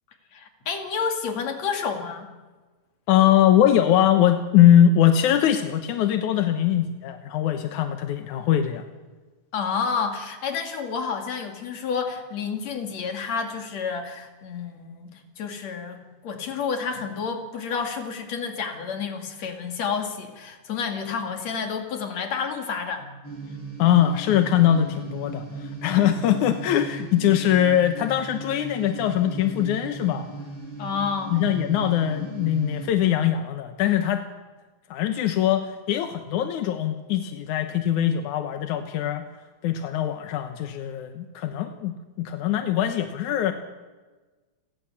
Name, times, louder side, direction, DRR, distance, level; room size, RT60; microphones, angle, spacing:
voice 1, 0.3-2.3 9.5-23.2 30.8-31.4, left 6 dB, 65° left, 4 dB, 3.6 m, -30 dB
voice 2, 3.1-8.8 23.8-30.3 31.3-34.2 34.9-39.3 39.6-43.5, left 10 dB, 90° left, 7 dB, 2.6 m, -22 dB
sound 1, 23.2-32.9, right 4 dB, 40° right, 5.8 m, -37 dB
30.0 x 17.5 x 7.2 m, 1.3 s
omnidirectional pair, 3.4 m